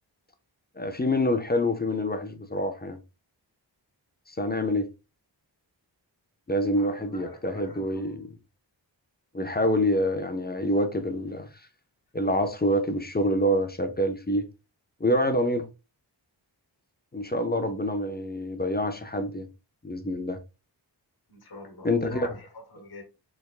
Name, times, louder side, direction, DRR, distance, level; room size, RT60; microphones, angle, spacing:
voice 1, 0.8-3.0 4.3-4.9 6.5-8.3 9.3-11.5 12.1-14.5 15.0-15.7 17.1-19.5 19.8-20.4 21.8-22.3, left 1 dB, 20° left, 0.6 m, -26 dB
voice 2, 6.7-8.1 21.3-23.0, left 2 dB, 55° left, 1.2 m, -44 dB
4.3 x 3.5 x 2.4 m
wide cardioid pair, 65°, 45 cm